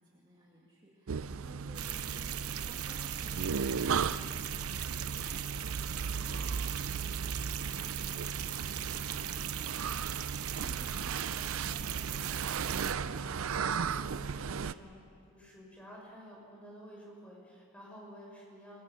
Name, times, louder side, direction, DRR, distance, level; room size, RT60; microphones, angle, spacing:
voice 1, 0.0-9.5, equal, 20° right, -4 dB, 2.2 m, -57 dB
sound 1, 1.1-14.7, right 6 dB, 65° right, 0.5 m, -36 dB
sound 2, 1.7-12.9, right 11 dB, 80° right, 0.9 m, -39 dB
voice 2, 10.5-18.8, equal, 5° left, -3 dB, 5.8 m, -52 dB
26.5 x 22.0 x 6.3 m, 2.3 s
head